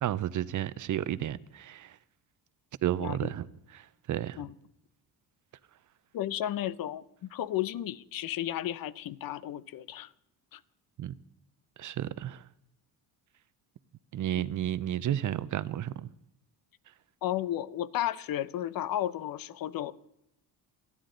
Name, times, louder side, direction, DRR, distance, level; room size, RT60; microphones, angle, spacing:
voice 1, 0.0-2.0 2.8-3.5 3.7-4.4 11.0-11.2 11.8-12.4 14.1-16.1, right 11 dB, 50° right, 0.7 m, -32 dB
voice 2, 3.0-3.3 4.4-4.5 6.1-10.1 10.5-10.6 14.3-14.4 17.2-19.9, left 12 dB, 60° left, 0.8 m, -33 dB
29.0 x 10.0 x 3.9 m
cardioid pair, 115°, 39 cm